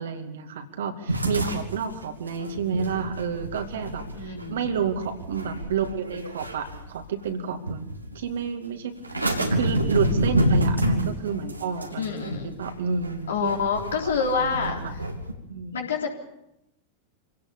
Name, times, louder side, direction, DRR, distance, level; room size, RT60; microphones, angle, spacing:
voice 1, 0.0-7.9 8.1-8.9 9.5-13.6 14.3-14.8 15.5-15.8, right 6 dB, 60° right, 6 dB, 2.4 m, -30 dB
sound 1, 1.1-7.3 7.7-8.3 9.0-15.3, right 1 dB, 85° right, 2.5 m, -28 dB
voice 2, 4.1-4.7 12.0-12.5 13.3-15.0 15.7-16.2, left 5 dB, 65° left, 2 dB, 3.6 m, -27 dB
25.5 x 17.5 x 7.0 m, 0.88 s
figure-of-eight pair, 90°, 0 cm